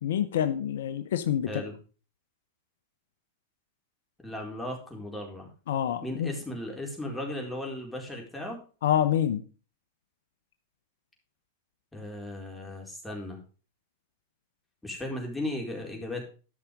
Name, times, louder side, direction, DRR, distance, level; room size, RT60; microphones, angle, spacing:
voice 1, 0.0-1.6 5.7-6.3 8.8-9.4, left 10 dB, 70° left, 11 dB, 0.9 m, -27 dB
voice 2, 4.2-5.5 6.0-8.6 11.9-13.4 14.8-16.2, left 1 dB, 5° left, 0 dB, 4.4 m, -36 dB
13.0 x 6.0 x 5.3 m, 0.36 s
hypercardioid pair, 110°, 0 cm